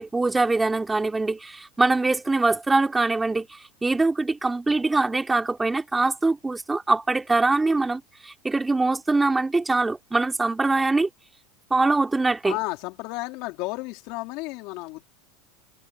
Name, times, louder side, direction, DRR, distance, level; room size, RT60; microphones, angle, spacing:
voice 1, 0.0-11.1 11.7-12.6, right 3 dB, 10° right, 3.6 m, -23 dB
voice 2, 12.4-15.0, left 22 dB, 60° left, 3.5 m, -32 dB
supercardioid pair, 135°, 0 cm